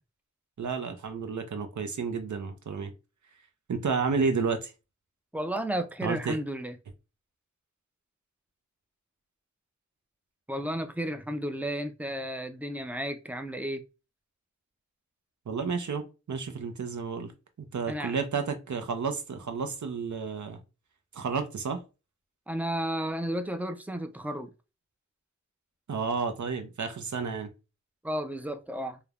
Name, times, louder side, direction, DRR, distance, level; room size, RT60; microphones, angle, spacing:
voice 1, 0.6-2.9 3.7-4.7 6.0-6.4 15.5-17.3 17.6-20.6 21.1-21.8 25.9-27.5, right 5 dB, 75° right, 0.6 m, -31 dB
voice 2, 5.3-6.8 10.5-13.8 17.9-18.2 22.5-24.5 28.0-29.0, right 1 dB, 5° right, 0.4 m, -33 dB
3.1 x 2.1 x 2.3 m
wide cardioid pair, 60°, 30 cm